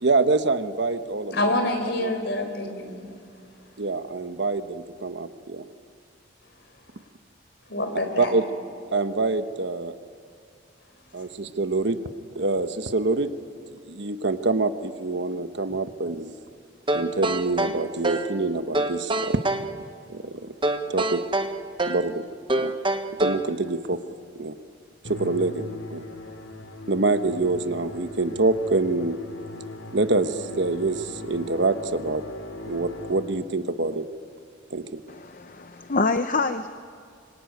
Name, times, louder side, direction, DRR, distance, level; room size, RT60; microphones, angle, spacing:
voice 1, 0.0-1.3 2.0-2.1 3.8-5.6 8.2-8.4 8.9-9.9 11.1-12.0 12.3-13.3 13.9-16.3 16.9-19.6 20.1-20.5 20.9-21.2 21.9-22.2 22.5-22.7 23.2-24.0 24.3-24.5 25.1-25.6 25.9-26.0 26.9-29.2 29.9-32.2 32.7-34.0 34.7-35.0, right 3 dB, 65° right, 9 dB, 1.1 m, -25 dB
voice 2, 1.3-3.1 7.7-8.3, left 1 dB, 60° left, 6 dB, 4.2 m, -27 dB
sound 1, 16.9-18.3 18.7-19.7 20.6-22.1 22.5-23.5, right 2 dB, 25° right, 1.0 m, -26 dB
Musical instrument, 25.0-33.6, left 2 dB, 80° left, 2.4 m, -39 dB
voice 3, 35.1-36.7, left 3 dB, 40° left, 9 dB, 0.8 m, -26 dB
25.0 x 24.5 x 9.5 m, 2.3 s
head